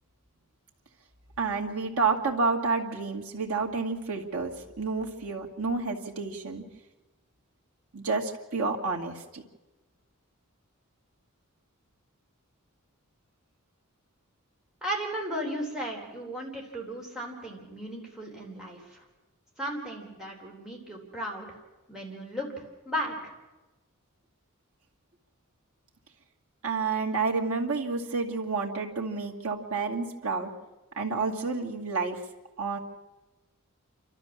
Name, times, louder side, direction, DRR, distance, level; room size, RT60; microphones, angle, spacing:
voice 1, 1.4-6.6 7.9-9.4 26.6-30.5 31.0-32.2 32.6-32.8, right 4 dB, 75° right, 0 dB, 2.4 m, -29 dB
voice 2, 14.8-19.1 19.6-21.6 21.9-22.5 22.9-23.4, equal, 5° right, -2 dB, 3.8 m, -35 dB
28.5 x 13.0 x 7.3 m, 1.1 s
head